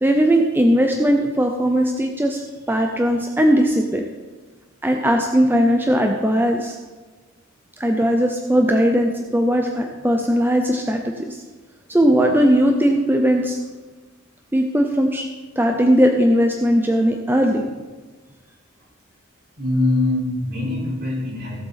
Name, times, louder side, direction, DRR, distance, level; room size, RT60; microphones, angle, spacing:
voice 1, 0.0-2.4 2.7-4.0 4.8-6.8 7.8-11.4 11.9-13.6 14.5-15.3 15.6-17.6, equal, 10° right, 3 dB, 0.7 m, -18 dB
voice 2, 19.6-21.6, left 2 dB, 55° right, -4 dB, 4.3 m, -22 dB
16.5 x 8.0 x 4.1 m, 1.3 s
head